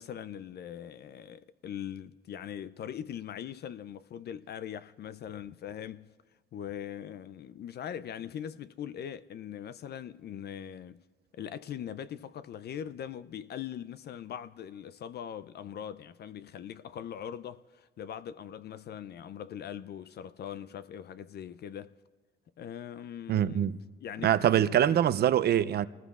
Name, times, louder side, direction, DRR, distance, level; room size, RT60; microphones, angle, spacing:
voice 1, 0.0-6.1 6.5-11.0 11.3-21.9 22.6-23.7 24.0-25.0, left 9 dB, 55° left, 0.4 m, -41 dB
voice 2, 23.3-23.8 24.2-25.9, right 10 dB, 55° right, 0.5 m, -24 dB
27.0 x 19.5 x 2.4 m
cardioid pair, 90°, 20 cm